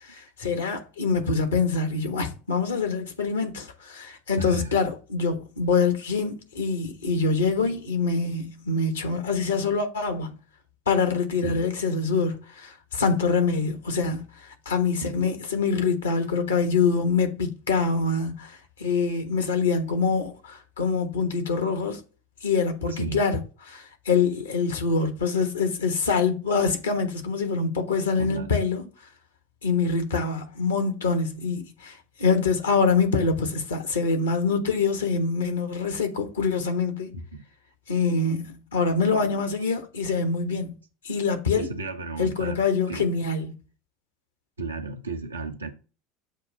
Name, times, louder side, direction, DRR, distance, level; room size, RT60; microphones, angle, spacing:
voice 1, 0.0-10.3 10.9-22.0 22.4-23.4 23.7-28.8 29.6-37.1 37.9-40.7 41.0-41.7 42.2-43.5, left 4 dB, 80° left, 1.2 m, -25 dB
voice 2, 4.4-4.8 11.4-11.7 15.0-15.3 22.9-23.2 28.2-28.5 37.1-37.4 41.5-43.1 44.6-45.7, right 3 dB, 90° right, 0.8 m, -34 dB
7.2 x 2.5 x 5.3 m
figure-of-eight pair, 75°, 0 cm